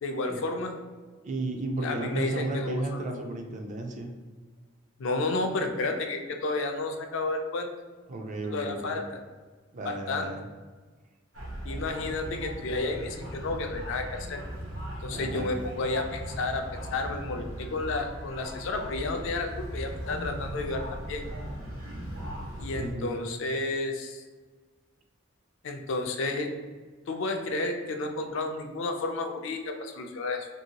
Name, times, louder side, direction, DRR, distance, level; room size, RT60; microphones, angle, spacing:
voice 1, 0.0-0.8 1.8-3.1 5.0-7.7 8.5-9.2 9.8-10.3 11.6-14.4 15.0-21.2 22.6-24.2 25.6-26.5 27.1-30.5, left 3 dB, 65° left, 5 dB, 0.4 m, -31 dB
voice 2, 1.2-4.1 8.1-9.0 9.7-10.5 15.1-15.5 22.7-23.1, right 2 dB, 35° right, 3 dB, 0.3 m, -33 dB
sound 1, 11.3-22.9, right 1 dB, 85° right, 1.0 m, -38 dB
2.9 x 2.6 x 2.8 m, 1.4 s
head